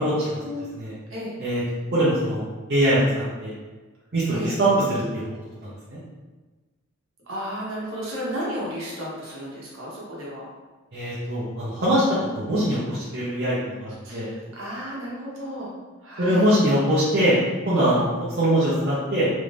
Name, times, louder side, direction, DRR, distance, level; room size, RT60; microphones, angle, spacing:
voice 1, 0.0-0.4 0.7-0.9 1.4-1.6 1.9-2.4 2.7-3.5 4.1-5.2 5.6-6.0 10.9-12.0 12.3-14.3 16.2-17.4 17.6-19.3, right 1 dB, 50° right, -11 dB, 0.8 m, -22 dB
voice 2, 4.3-4.6 7.3-10.5 14.0-15.7 16.0-16.5, equal, 65° right, -6 dB, 1.1 m, -33 dB
3.1 x 2.6 x 3.4 m, 1.3 s
head